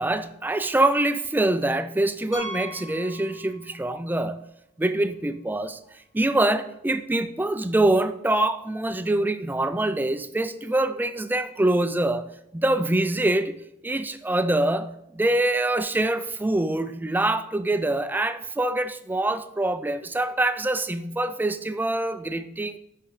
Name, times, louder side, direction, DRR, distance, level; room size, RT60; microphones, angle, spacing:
voice 1, 0.0-4.4 4.8-12.3 12.5-22.8, right 2 dB, 10° right, 10 dB, 0.3 m, -25 dB
Piano, 2.3-3.9 4.2-4.3 4.9-5.0 5.3-5.4 7.4-7.5, equal, 35° left, 1.5 m, -39 dB
9.7 x 5.8 x 3.2 m, 0.82 s
head